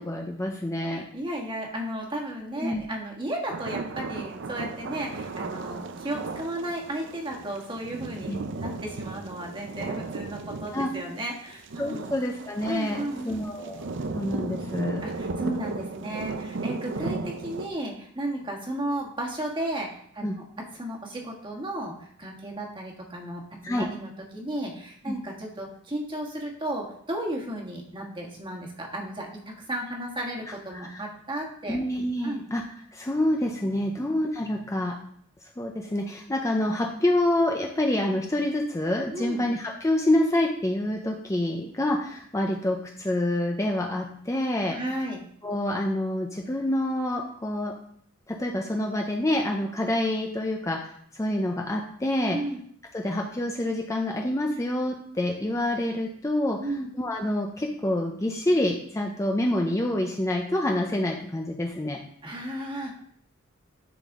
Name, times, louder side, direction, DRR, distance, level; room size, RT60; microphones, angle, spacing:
voice 1, 0.0-1.1 2.6-2.8 8.3-8.4 10.7-10.9 11.8-13.9 14.1-15.0 20.2-20.4 23.6-23.9 25.1-25.2 30.7-31.0 31.7-32.6 32.9-35.0 35.6-44.8 45.4-47.7 48.3-52.4 52.9-56.6 57.0-62.0, left 1 dB, 15° left, 1 dB, 0.5 m, -27 dB
voice 2, 0.9-12.1 12.7-13.4 15.0-20.3 20.6-31.8 32.2-32.4 34.0-34.1 39.1-39.4 44.7-45.2 52.3-52.6 56.6-56.9 62.2-62.9, right 1 dB, 25° right, -1 dB, 1.4 m, -34 dB
sound 1, 3.5-17.7, right 3 dB, 60° right, 0.5 m, -35 dB
10.0 x 4.1 x 3.6 m, 0.64 s
head